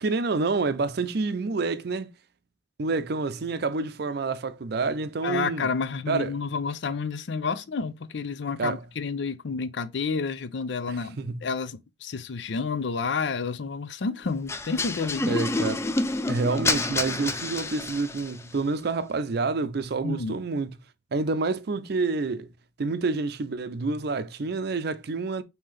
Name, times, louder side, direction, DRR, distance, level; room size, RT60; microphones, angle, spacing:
voice 1, 0.0-2.1 2.8-5.7 6.1-6.4 8.6-8.8 10.9-11.4 15.3-15.8 16.3-20.7 21.1-22.5 22.8-25.4, right 3 dB, 60° right, 0.5 m, -28 dB
voice 2, 5.2-15.4 20.0-20.4, left 5 dB, 70° left, 0.5 m, -30 dB
sound 1, 14.5-18.4, left 2 dB, 15° left, 0.4 m, -28 dB
5.5 x 2.8 x 3.2 m
head